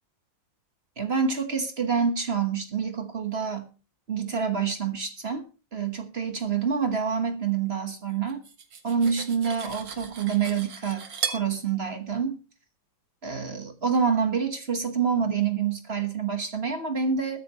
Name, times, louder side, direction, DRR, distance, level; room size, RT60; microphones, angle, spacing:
voice 1, 1.0-3.7 4.1-5.4 5.7-8.4 8.8-12.4 13.2-17.4, right 6 dB, 35° right, 7 dB, 1.4 m, -27 dB
Cutlery silverware, 8.3-11.5, right 7 dB, 70° right, 2.2 m, -36 dB
21.5 x 10.0 x 3.1 m, 0.33 s
omnidirectional pair, 2.1 m